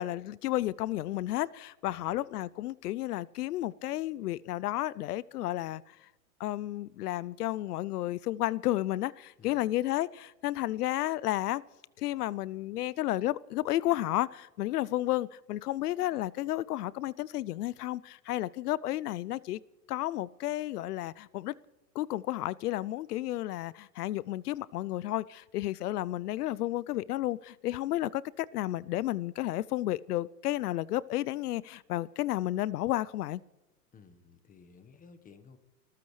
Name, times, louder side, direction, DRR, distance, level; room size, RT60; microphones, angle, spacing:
voice 1, 0.0-5.8 6.4-11.6 12.0-19.6 19.9-21.5 21.9-33.4, left 15 dB, 75° left, 0.6 m, -32 dB
voice 2, 1.8-2.2 9.4-9.7 33.9-35.6, left 5 dB, 15° left, 1.3 m, -55 dB
29.0 x 14.5 x 3.2 m
hypercardioid pair, 125°, 47 cm